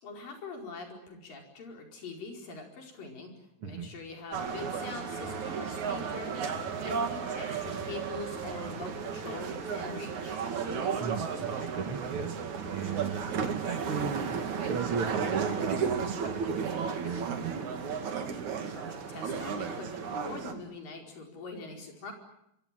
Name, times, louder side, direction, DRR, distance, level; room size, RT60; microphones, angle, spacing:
voice 1, 0.0-3.3 3.6-6.5 6.9-10.4 18.7-22.1, left 3 dB, 55° left, 2 dB, 6.3 m, -43 dB
sound 1, 4.3-20.5, right 6 dB, 50° right, 3.3 m, -34 dB
voice 2, 10.9-17.7, right 6 dB, 70° right, 7 dB, 1.3 m, -37 dB
25.5 x 24.0 x 7.6 m, 0.78 s
omnidirectional pair, 4.9 m